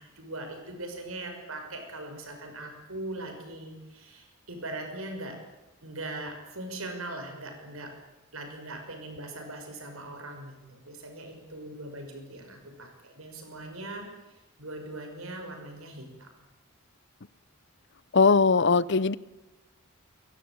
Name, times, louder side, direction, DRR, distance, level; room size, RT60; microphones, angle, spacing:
voice 1, 0.0-5.4 5.8-7.9 8.3-14.1 14.6-16.3, right 2 dB, 70° right, 5 dB, 6.2 m, -40 dB
voice 2, 18.1-19.2, left 4 dB, 55° left, 20 dB, 0.8 m, -20 dB
24.0 x 22.5 x 8.9 m, 1.0 s
head